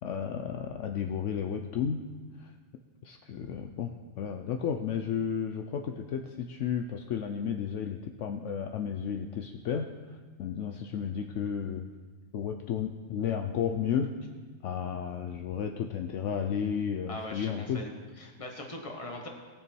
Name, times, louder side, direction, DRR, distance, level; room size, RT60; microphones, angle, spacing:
voice 1, 0.0-2.0 2.4-2.5 3.0-9.9 10.4-11.9 12.3-14.1 14.6-17.8, left 7 dB, 70° left, 5 dB, 0.9 m, -33 dB
voice 2, 17.1-17.9 18.2-19.3, left 1 dB, 25° left, 2 dB, 1.5 m, -40 dB
19.0 x 6.9 x 4.5 m, 1.4 s
omnidirectional pair, 1.4 m